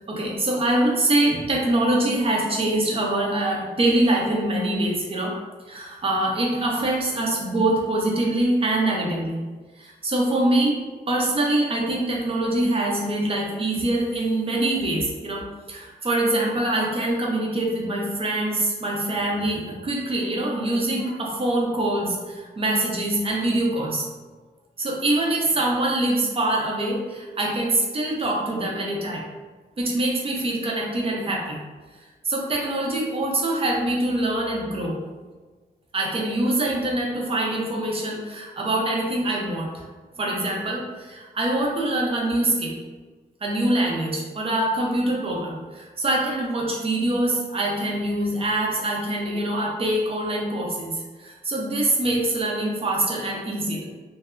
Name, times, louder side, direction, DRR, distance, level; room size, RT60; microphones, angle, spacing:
voice 1, 0.1-5.3 5.7-9.4 9.8-10.8 11.1-24.1 24.8-29.2 29.8-31.6 32.2-35.0 35.9-39.8 40.2-42.7 43.4-53.9, right 1 dB, 35° right, -2 dB, 0.6 m, -24 dB
2.1 x 2.0 x 3.6 m, 1.3 s
wide cardioid pair, 125°, 16 cm